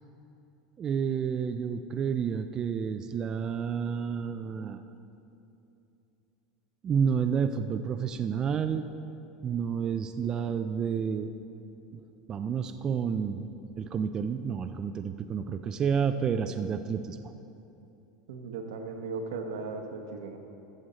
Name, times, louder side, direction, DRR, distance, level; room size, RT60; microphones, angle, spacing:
voice 1, 0.8-4.8 6.8-8.9 9.4-11.3 11.9-12.0 12.3-13.5 13.8-17.2, right 7 dB, 30° right, 8 dB, 0.3 m, -30 dB
voice 2, 18.3-20.4, right 4 dB, 90° right, 4 dB, 1.0 m, -37 dB
14.5 x 6.3 x 4.1 m, 2.8 s
supercardioid pair, 130°, 2 cm